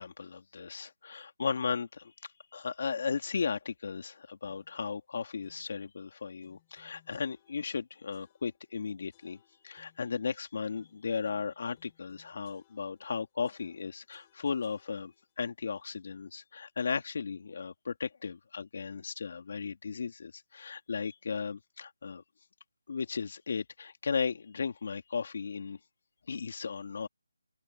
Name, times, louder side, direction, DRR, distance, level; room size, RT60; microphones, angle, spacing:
voice 1, 0.0-22.2 22.9-25.8 26.3-27.1, left 5 dB, 40° left, 2.7 m, -36 dB
sound 1, 4.4-4.8 5.4-5.8 6.4-7.8 8.1-8.7 9.1-10.2 10.7-13.1 13.4-15.3, left 16 dB, 15° left, 5.2 m, -68 dB
open air
figure-of-eight pair, 175°, 0 cm